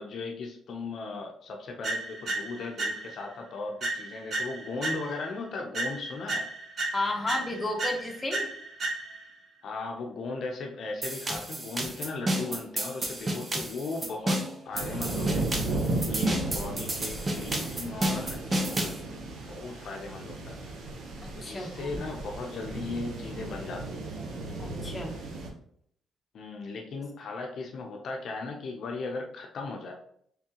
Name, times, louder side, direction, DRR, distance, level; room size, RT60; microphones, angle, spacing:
voice 1, 0.0-6.5 9.6-15.8 16.1-19.0 19.5-20.6 21.4-24.1 26.3-29.9, left 3 dB, 60° left, 1 dB, 0.6 m, -37 dB
sound 1, 1.8-3.3 3.8-5.4 5.7-9.3, right 2 dB, 50° right, 1.6 m, -34 dB
voice 2, 6.9-8.5 21.2-22.0 24.6-25.1, left 2 dB, 20° left, 0 dB, 1.0 m, -33 dB
sound 2, 11.0-19.0, right 1 dB, 30° right, 0.8 m, -31 dB
sound 3, 14.7-25.5, right 2 dB, 75° right, 0.9 m, -35 dB
3.7 x 3.5 x 2.9 m, 0.65 s
cardioid pair, 90°, 0 cm